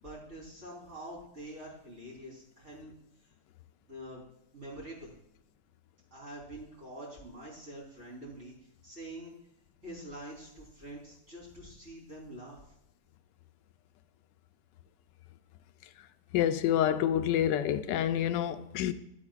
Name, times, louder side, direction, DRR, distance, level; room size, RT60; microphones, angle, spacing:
voice 1, 0.0-2.9 3.9-4.2 4.5-5.1 6.1-8.5 8.8-9.3 9.8-12.6, right 1 dB, 40° right, 4.1 m, -45 dB
voice 2, 16.3-18.9, left 10 dB, 90° left, 1.2 m, -28 dB
12.5 x 8.3 x 2.4 m
omnidirectional pair, 1.8 m